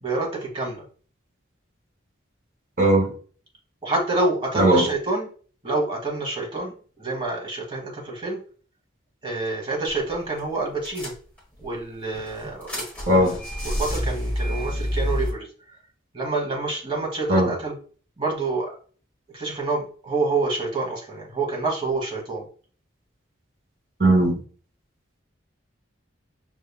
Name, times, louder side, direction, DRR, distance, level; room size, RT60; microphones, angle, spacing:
voice 1, 0.0-0.8 3.8-5.3 5.6-8.4 9.2-11.1 11.6-15.5 16.1-17.8 18.2-18.7 19.3-22.5, right 2 dB, 25° right, 1.2 m, -27 dB
voice 2, 2.8-3.1 4.6-4.9 13.1-13.3 17.3-17.5 24.0-24.4, right 1 dB, 45° right, 2.0 m, -18 dB
sound 1, 9.9-10.1 10.4-10.5 10.8-11.6 12.1-15.3, equal, 10° left, 1.4 m, -28 dB
5.5 x 3.4 x 2.2 m
head